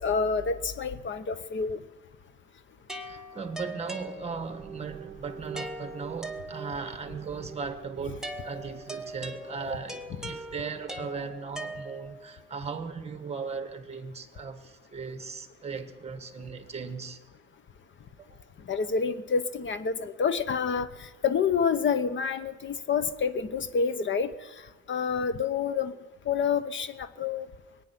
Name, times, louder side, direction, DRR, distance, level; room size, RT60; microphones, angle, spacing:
voice 1, 0.0-1.8 18.7-20.9 21.2-24.3 24.9-25.9 26.3-27.5, left 6 dB, 40° left, 13 dB, 0.8 m, -28 dB
sound 1, 2.9-4.7 5.6-7.0 8.2-12.3, right 1 dB, ahead, 1.0 m, -41 dB
voice 2, 3.0-17.2 18.2-18.3, right 5 dB, 20° right, 8 dB, 1.4 m, -37 dB
sound 2, 4.1-11.6, right 6 dB, 55° right, 1.0 m, -47 dB
22.5 x 9.2 x 6.0 m, 1.2 s
cardioid pair, 145°, 29 cm